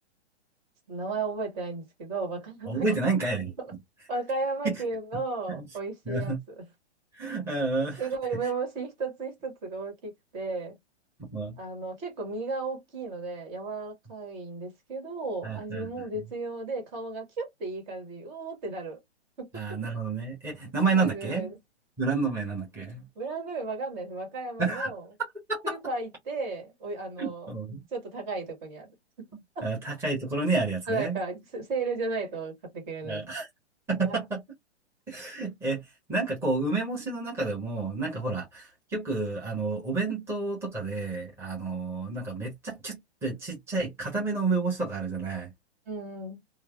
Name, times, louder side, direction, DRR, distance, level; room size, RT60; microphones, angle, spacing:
voice 1, 0.9-2.9 3.6-3.7 4.1-6.6 8.0-10.7 11.6-19.0 19.4-19.6 20.9-21.5 23.1-25.0 25.6-27.5 27.9-29.3 29.5-29.6 30.9-33.2 34.1-34.2 45.9-46.4, right 3 dB, 45° right, 1.7 m, -34 dB
voice 2, 2.7-3.5 4.6-4.8 5.5-5.7 6.1-6.4 7.1-8.1 11.3-11.6 15.4-16.1 19.5-21.5 22.0-23.0 24.6-24.9 25.5-25.8 27.2-27.8 29.6-31.2 33.0-33.5 33.9-34.4 35.1-35.8 36.1-45.5, right 3 dB, 5° right, 1.1 m, -30 dB
3.1 x 2.2 x 2.4 m
hypercardioid pair, 125°, 34 cm